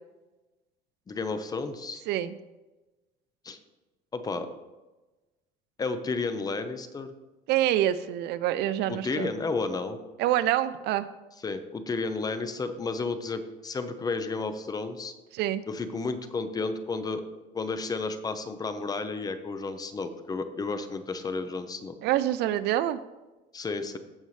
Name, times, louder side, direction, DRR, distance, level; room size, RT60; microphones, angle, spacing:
voice 1, 1.1-2.0 3.4-3.6 4.1-4.5 5.8-7.1 8.9-10.0 11.4-15.1 15.7-17.2 17.5-22.0 23.5-24.0, left 3 dB, 20° left, 10 dB, 0.7 m, -32 dB
voice 2, 2.1-2.4 7.5-9.3 10.2-11.1 15.3-15.6 22.0-23.0, right 13 dB, 65° right, 14 dB, 0.5 m, -26 dB
16.0 x 5.4 x 3.2 m, 1.1 s
cardioid pair, 140°, 19 cm